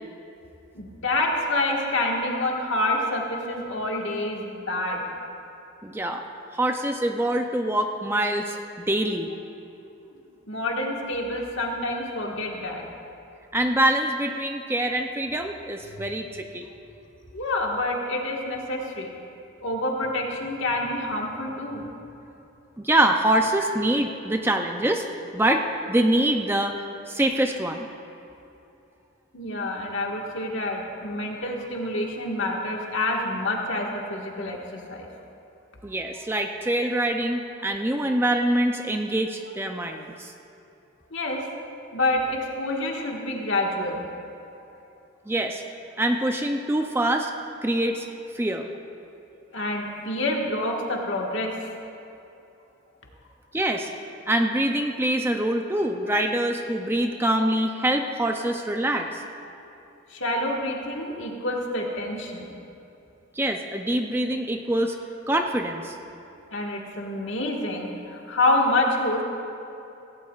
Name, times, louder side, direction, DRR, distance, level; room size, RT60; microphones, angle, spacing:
voice 1, 0.7-5.0 10.5-12.8 17.3-19.1 19.6-21.9 23.6-23.7 29.3-35.1 41.1-41.4 41.9-44.0 49.5-51.7 60.1-62.5 66.5-69.2, left 2 dB, 65° left, -1 dB, 1.6 m, -27 dB
voice 2, 5.8-6.2 6.5-9.3 13.5-16.7 22.8-25.0 25.3-26.8 27.1-27.9 35.8-40.3 45.3-45.6 46.0-47.3 47.6-48.1 48.3-48.7 53.5-53.9 54.3-59.2 63.3-65.0 65.3-66.0, right 1 dB, 10° right, 4 dB, 0.5 m, -24 dB
17.0 x 16.5 x 2.4 m, 2.8 s
head